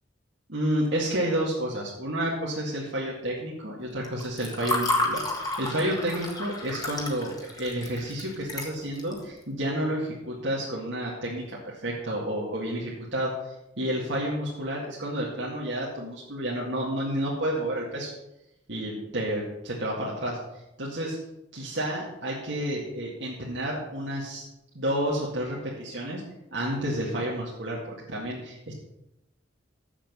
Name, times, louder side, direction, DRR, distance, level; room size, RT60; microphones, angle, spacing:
voice 1, 0.5-13.3 13.8-18.1 18.7-20.4 20.8-21.2 21.5-24.4 24.7-26.2 26.5-28.7, right 1 dB, 70° right, -5 dB, 2.1 m, -30 dB
Water / Fill (with liquid), 4.0-9.2, left 2 dB, 20° left, 1.6 m, -31 dB
7.4 x 7.3 x 7.1 m, 0.89 s
head